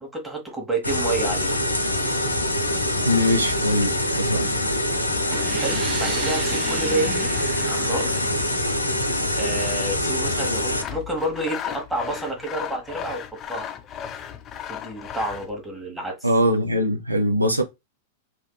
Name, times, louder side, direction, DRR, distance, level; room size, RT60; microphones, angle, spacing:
voice 1, 0.0-1.5 5.5-7.3 7.6-8.1 9.3-13.7 14.7-16.3, right 1 dB, 5° right, 1.3 m, -29 dB
sound 1, 0.8-10.8, left 1 dB, 90° left, 0.5 m, -24 dB
voice 2, 3.0-4.5 16.2-17.6, equal, 90° right, 0.5 m, -22 dB
sound 2, 5.3-9.1, right 9 dB, 35° right, 0.3 m, -35 dB
Sawing, 10.7-15.5, left 9 dB, 30° left, 0.5 m, -35 dB
3.5 x 2.4 x 2.2 m
figure-of-eight pair, 95°, 0 cm